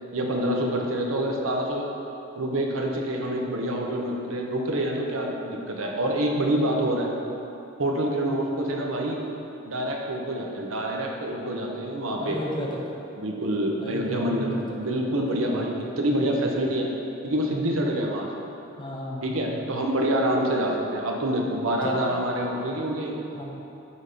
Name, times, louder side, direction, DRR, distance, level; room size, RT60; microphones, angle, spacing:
voice 1, 0.1-1.9 2.4-7.1 7.8-9.2 9.6-12.4 13.2-16.9 17.2-18.3 19.2-23.1, right 1 dB, 75° right, 0 dB, 0.9 m, -26 dB
voice 2, 12.2-12.8 13.8-14.8 15.0-16.4 18.8-19.6 21.8-22.0 23.3-23.4, left 1 dB, 25° left, -3 dB, 0.9 m, -35 dB
7.2 x 4.1 x 5.0 m, 2.8 s
head